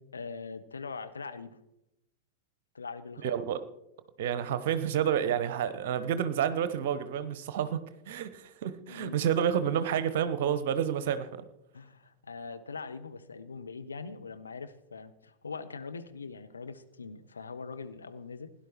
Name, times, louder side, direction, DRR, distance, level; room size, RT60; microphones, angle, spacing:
voice 1, 0.1-1.6 2.7-3.4 8.9-9.4 11.7-18.5, left 4 dB, 75° left, 8 dB, 1.0 m, -42 dB
voice 2, 3.2-3.6 4.2-11.3, right 9 dB, 55° right, 13 dB, 1.0 m, -29 dB
17.0 x 10.5 x 4.6 m, 0.84 s
figure-of-eight pair, 90°, 0 cm